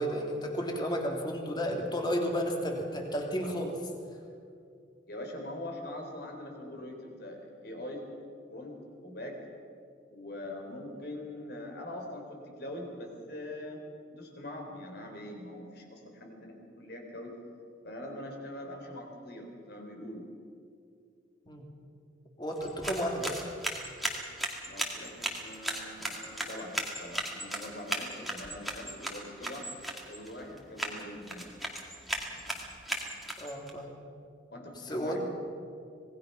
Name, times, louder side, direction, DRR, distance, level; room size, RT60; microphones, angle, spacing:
voice 1, 0.0-3.9 21.5-21.7 22.4-23.4 33.4-34.0 34.8-35.2, equal, 20° left, 1 dB, 2.9 m, -32 dB
voice 2, 5.1-8.0 8.5-8.8 9.0-9.4 10.1-13.8 14.1-17.3 17.8-20.2 24.6-29.7 30.1-31.5 34.5-35.2, left 1 dB, 55° left, 2 dB, 4.2 m, -43 dB
sound 1, 22.5-33.7, right 1 dB, ahead, 2.2 m, -37 dB
26.0 x 20.0 x 5.9 m, 2.4 s
head